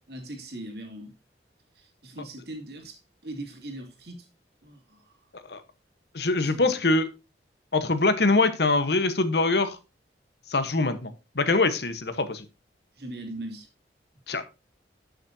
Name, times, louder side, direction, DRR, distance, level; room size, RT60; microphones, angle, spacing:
voice 1, 0.1-1.1 1.7-4.3 4.6-5.2 6.4-6.8 13.0-13.7, right 1 dB, 60° right, 2.9 m, -40 dB
voice 2, 6.1-7.1 7.7-9.8 10.5-12.4 14.3-14.6, left 3 dB, 65° left, 1.2 m, -24 dB
11.5 x 6.5 x 2.8 m
head